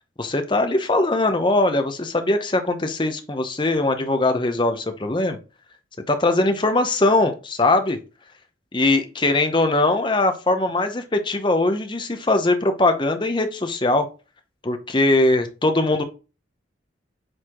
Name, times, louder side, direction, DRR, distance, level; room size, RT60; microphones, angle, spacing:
voice 1, 0.2-5.4 6.1-8.0 8.7-14.1 14.6-16.0, left 2 dB, 25° left, 7 dB, 0.8 m, -21 dB
7.8 x 4.1 x 3.0 m, 0.32 s
head